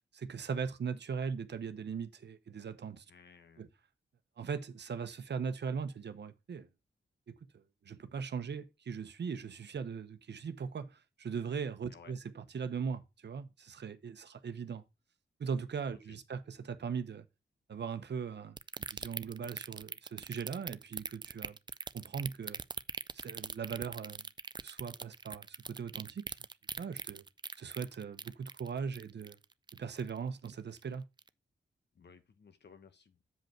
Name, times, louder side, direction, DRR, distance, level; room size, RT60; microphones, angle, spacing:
voice 1, 0.1-3.0 3.6-3.7 4.4-6.7 7.3-14.8 15.4-17.2 17.7-18.6 18.9-21.6 21.9-22.6 23.1-24.3 24.6-26.4 26.8-27.2 27.6-29.4 29.8-31.0, right 6 dB, 65° right, 0.9 m, -39 dB
voice 2, 3.1-3.7 11.9-12.1 15.9-16.2 31.9-33.2, left 6 dB, 60° left, 1.2 m, -58 dB
sound 1, 18.6-30.2 30.5-30.8 31.2-31.3, right 4 dB, 25° right, 0.3 m, -41 dB
7.9 x 5.2 x 4.4 m
wide cardioid pair, 130°, 19 cm